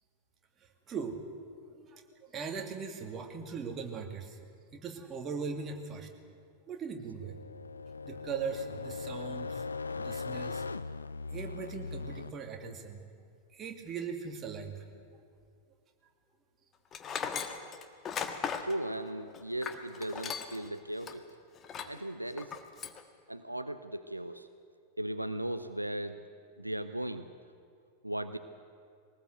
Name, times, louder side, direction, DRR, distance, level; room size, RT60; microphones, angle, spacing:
voice 1, 0.9-1.2 1.8-2.0 2.3-4.4 4.7-6.1 6.7-7.3 8.1-9.6 10.0-10.6 11.3-13.0 13.5-14.8, right 5 dB, 25° right, 4 dB, 2.4 m, -39 dB
sound 1, 7.2-12.3, left 4 dB, 75° left, 0.5 m, -39 dB
Tools, 16.9-20.7 21.0-21.1 21.6-22.0 22.4-23.0, left 7 dB, 25° left, 1.5 m, -37 dB
voice 2, 18.6-21.3 21.8-22.6 23.3-24.5 25.0-26.2 26.6-27.3 28.0-28.4, right 1 dB, 85° right, 10 dB, 0.7 m, -37 dB
21.5 x 19.0 x 7.9 m, 2.3 s
figure-of-eight pair, 90°, 0 cm